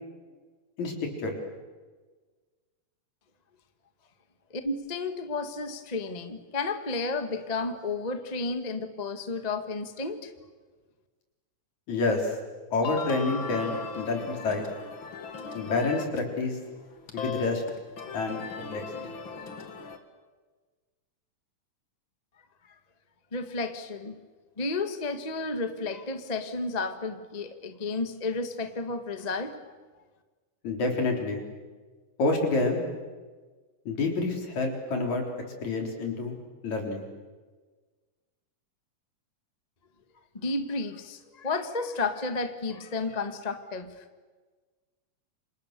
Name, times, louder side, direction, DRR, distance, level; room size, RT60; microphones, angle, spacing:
voice 1, 4.5-10.3 23.3-24.2 24.6-29.6 40.3-44.0, left 3 dB, 25° left, 8 dB, 0.9 m, -32 dB
voice 2, 11.9-12.3 12.7-14.6 15.5-16.6 17.1-17.6 18.1-19.1 30.6-31.4 32.2-32.8 33.9-35.2 35.6-36.4 36.6-37.1, left 3 dB, 65° left, 2 dB, 5.3 m, -28 dB
sound 1, 12.8-16.4 16.7-20.0, left 5 dB, 45° left, 2.3 m, -38 dB
29.5 x 26.5 x 6.8 m, 1.4 s
omnidirectional pair, 3.6 m